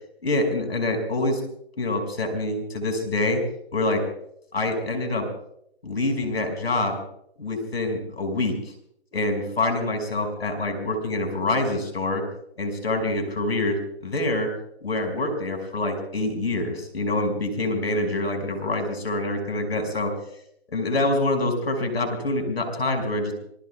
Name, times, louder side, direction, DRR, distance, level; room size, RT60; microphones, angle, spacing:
voice 1, 0.2-1.4 1.8-3.4 3.7-4.0 4.5-5.3 5.8-7.0 7.4-8.5 9.1-12.2 12.6-14.5 14.8-20.1 20.7-23.3, left 2 dB, 70° left, 5 dB, 5.7 m, -26 dB
27.5 x 20.0 x 2.3 m, 0.70 s
hypercardioid pair, 170°, 32 cm